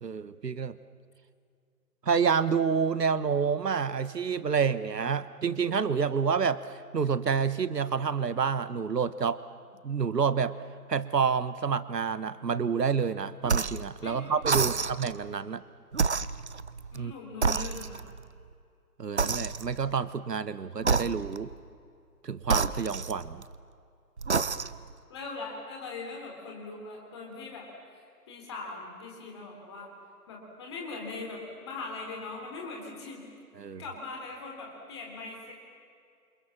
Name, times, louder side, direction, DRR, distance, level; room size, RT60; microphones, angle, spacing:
voice 1, 0.0-0.8 2.0-9.4 9.8-10.5 10.9-15.6 16.9-17.1 19.0-21.5 22.2-23.4 33.6-33.8, right 6 dB, 80° right, 14 dB, 1.4 m, -28 dB
sound 1, 13.4-13.9 14.4-15.2 15.9-17.0 17.4-18.2 19.2-19.9 20.8-21.5 22.4-23.6 24.2-24.9, right 5 dB, 45° right, 0.8 m, -29 dB
voice 2, 14.0-14.7 16.9-18.0 25.1-27.7 28.3-29.9 30.3-33.3 33.6-35.5, left 3 dB, 15° left, 0 dB, 3.7 m, -41 dB
29.0 x 27.0 x 7.4 m, 2.3 s
hypercardioid pair, 175°, 47 cm